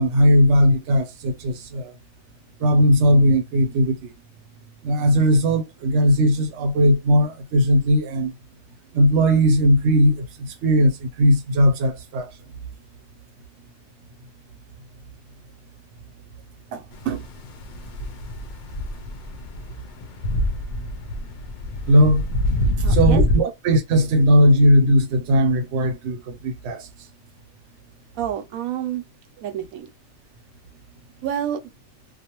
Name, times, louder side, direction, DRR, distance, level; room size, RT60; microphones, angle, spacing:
voice 1, 0.0-1.9 2.6-4.0 4.8-8.3 8.9-12.3 16.7-17.2 21.9-22.2 22.9-26.9, equal, 60° right, 0.9 m, -18 dB
sound 1, 16.9-23.4, left 1 dB, 90° left, 0.4 m, -25 dB
voice 2, 22.8-23.2 28.2-29.0 29.4-29.9 31.2-31.6, right 10 dB, 90° right, 1.0 m, -28 dB
2.5 x 2.2 x 2.9 m
omnidirectional pair, 1.4 m